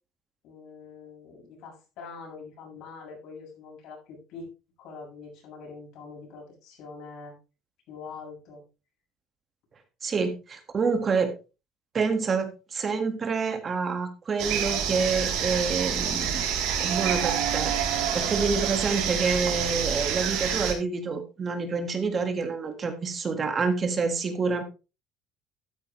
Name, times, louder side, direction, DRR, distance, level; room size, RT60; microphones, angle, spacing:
voice 1, 0.4-4.5 4.8-7.3 7.9-8.6, left 4 dB, 65° left, -1 dB, 7.3 m, -44 dB
voice 2, 10.0-11.3 11.9-16.5 16.8-17.7 18.1-24.6, right 4 dB, 30° right, 7 dB, 1.8 m, -27 dB
sound 1, 14.4-20.7, right 8 dB, 80° right, 3.3 m, -27 dB
12.5 x 9.7 x 3.2 m, 0.30 s
cardioid pair, 140°, 0 cm